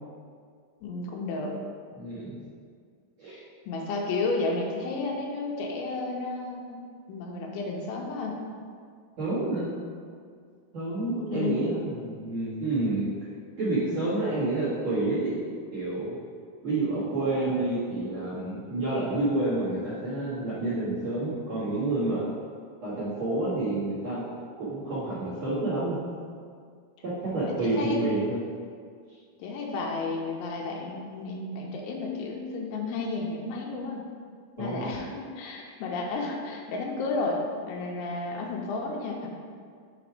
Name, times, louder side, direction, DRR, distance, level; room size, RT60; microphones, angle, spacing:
voice 1, 0.8-1.5 3.7-6.8 7.1-8.4 11.3-11.6 27.6-28.0 29.4-34.0 34.6-37.4 37.7-39.3, left 3 dB, 90° left, 0 dB, 3.1 m, -32 dB
voice 2, 2.0-2.4 3.2-3.4 9.2-9.7 10.7-13.1 13.6-15.4 15.7-16.2 16.6-22.3 22.8-24.2 24.6-26.0 27.0-28.4 34.6-34.9, right 2 dB, 55° right, -10 dB, 1.9 m, -29 dB
7.0 x 4.2 x 4.7 m, 2.1 s
omnidirectional pair, 5.4 m